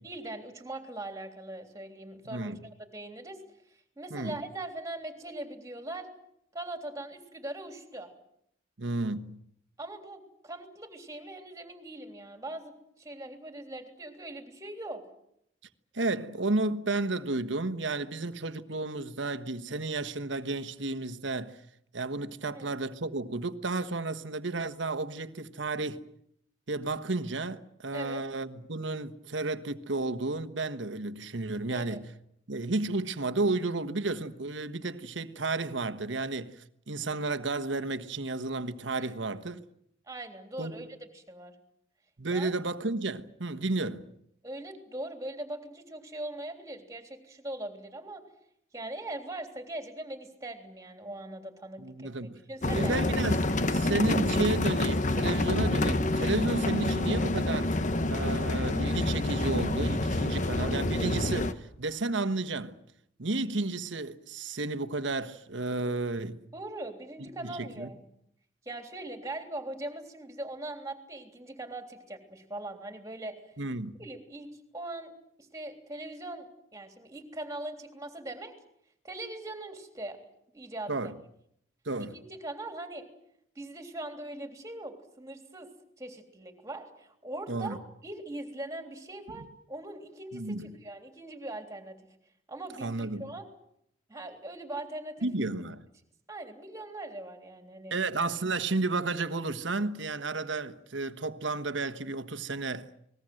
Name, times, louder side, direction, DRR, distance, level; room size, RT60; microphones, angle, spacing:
voice 1, 0.0-2.6 2.9-3.4 4.0-6.1 6.5-8.1 9.8-15.0 22.5-22.7 27.9-28.2 31.7-32.0 38.9-39.1 40.1-40.9 41.1-41.5 42.3-42.5 44.4-48.2 48.7-53.0 60.2-60.3 66.5-68.0 68.6-73.4 74.0-75.1 75.4-78.5 79.0-80.2 80.5-81.1 82.0-83.0 83.5-85.7 86.0-87.8 88.0-92.0 92.5-93.5 94.1-95.3 96.3-97.9, right 1 dB, 15° right, 3.4 m, -41 dB
voice 2, 2.2-2.6 4.1-4.4 8.8-9.4 15.9-21.6 21.9-26.0 26.7-32.1 32.5-39.7 40.6-40.8 42.2-44.1 51.8-52.4 52.7-53.4 53.7-57.8 58.1-62.8 63.2-66.4 67.4-67.9 73.6-74.0 80.9-81.1 81.8-82.2 87.5-87.8 89.3-89.5 90.3-90.7 92.8-93.3 95.2-95.8 97.9-102.9, right 2 dB, 75° right, 1.3 m, -32 dB
sound 1, 52.6-61.5, left 2 dB, 40° left, 1.2 m, -27 dB
29.0 x 20.5 x 7.8 m
head